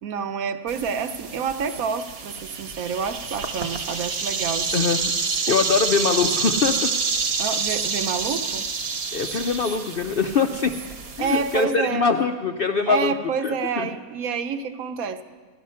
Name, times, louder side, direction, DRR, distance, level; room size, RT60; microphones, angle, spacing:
voice 1, 0.0-4.9 5.5-5.6 7.4-8.7 11.2-12.1 12.9-15.2, right 6 dB, 75° right, 9 dB, 1.2 m, -28 dB
sound 1, 0.7-11.6, right 4 dB, 50° right, 1.0 m, -28 dB
voice 2, 4.7-5.1 5.5-6.9 9.1-10.7 11.2-13.1 13.4-13.9, left 5 dB, 65° left, 6 dB, 0.5 m, -23 dB
15.0 x 12.0 x 5.5 m, 1.4 s
omnidirectional pair, 1.5 m